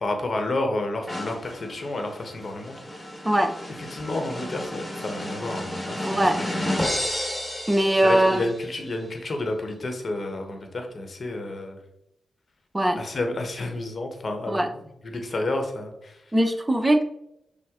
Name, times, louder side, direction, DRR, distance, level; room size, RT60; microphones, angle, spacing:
voice 1, 0.0-2.8 3.8-6.5 6.8-7.0 8.0-11.8 13.0-16.2, left 2 dB, 55° left, 4 dB, 1.0 m, -30 dB
sound 1, 1.1-8.6, left 1 dB, 15° left, 1.3 m, -32 dB
voice 2, 6.0-6.4 7.7-8.4 12.7-13.0 14.5-14.7 16.3-17.0, right 1 dB, 20° right, 6 dB, 0.7 m, -20 dB
6.3 x 2.1 x 3.6 m, 0.79 s
cardioid pair, 50°, 0 cm